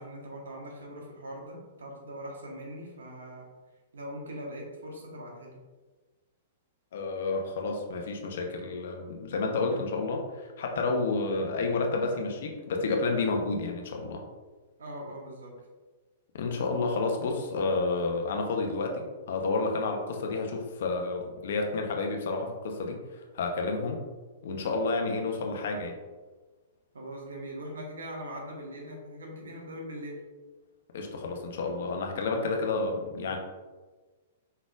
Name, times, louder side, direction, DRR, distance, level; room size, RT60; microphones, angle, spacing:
voice 1, 0.0-3.5 3.9-5.6 14.8-15.5 26.9-30.2 32.2-32.5, equal, 75° right, 0 dB, 1.2 m, -41 dB
voice 2, 6.9-14.2 16.3-24.0 24.4-26.0 30.9-33.4, left 3 dB, 60° left, 3 dB, 0.8 m, -30 dB
5.4 x 4.0 x 2.4 m, 1.3 s
figure-of-eight pair, 110°, 0 cm